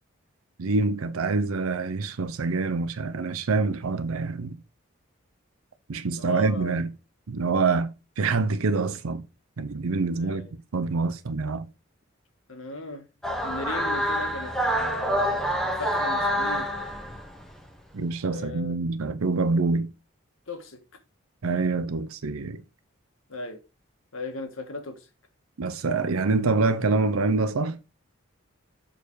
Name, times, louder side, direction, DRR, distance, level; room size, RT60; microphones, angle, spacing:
voice 1, 0.6-4.6 5.9-6.9 7.3-7.9 8.2-9.2 9.6-10.4 10.7-11.7 17.9-19.9 21.4-22.6 25.6-27.8, right 3 dB, 85° right, 0.6 m, -26 dB
voice 2, 6.0-6.9 10.1-10.5 12.5-13.1 13.4-14.5 14.8-16.7 18.3-18.9 20.5-20.8 23.3-23.6 24.1-25.1, left 2 dB, 75° left, 1.5 m, -37 dB
sound 1, 13.2-17.6, equal, ahead, 0.8 m, -27 dB
6.7 x 4.6 x 4.7 m
head